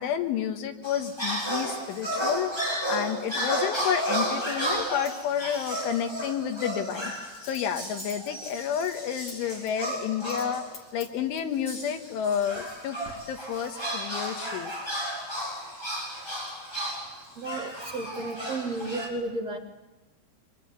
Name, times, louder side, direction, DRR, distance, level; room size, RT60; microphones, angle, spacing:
voice 1, 0.0-7.1 7.4-10.6 10.9-14.7, left 9 dB, 75° left, 6 dB, 3.7 m, -30 dB
sound 1, 0.8-10.7 11.7-19.1, right 1 dB, 5° left, 6.6 m, -33 dB
Coin (dropping), 4.7-4.8 7.3-9.3 9.7-9.8 10.3-10.5 10.7-11.5 12.2-12.7 13.0-13.1, left 5 dB, 45° left, 4.0 m, -48 dB
voice 2, 17.4-19.6, right 2 dB, 55° right, 1 dB, 1.9 m, -33 dB
26.0 x 24.0 x 9.3 m, 1.1 s
omnidirectional pair, 5.7 m